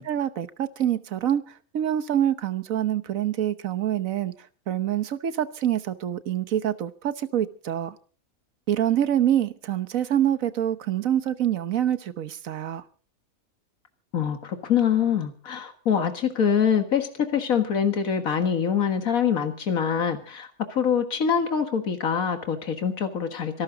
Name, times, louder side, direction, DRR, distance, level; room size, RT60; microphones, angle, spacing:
voice 1, 0.1-4.3 4.7-7.9 8.7-12.8, right 10 dB, 75° right, 1.4 m, -26 dB
voice 2, 14.1-23.6, left 7 dB, 85° left, 2.1 m, -24 dB
25.0 x 13.0 x 3.9 m
omnidirectional pair, 1.4 m